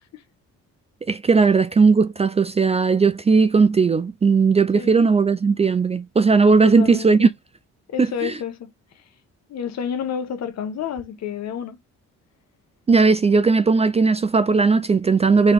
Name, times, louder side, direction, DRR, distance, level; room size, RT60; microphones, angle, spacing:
voice 1, 1.1-7.3 8.0-8.3 12.9-15.5, right 4 dB, 20° right, 0.3 m, -17 dB
voice 2, 6.6-7.3 7.9-9.0 9.5-11.8, left 8 dB, 60° left, 1.0 m, -30 dB
4.1 x 2.8 x 3.8 m
cardioid pair, 90°, 30 cm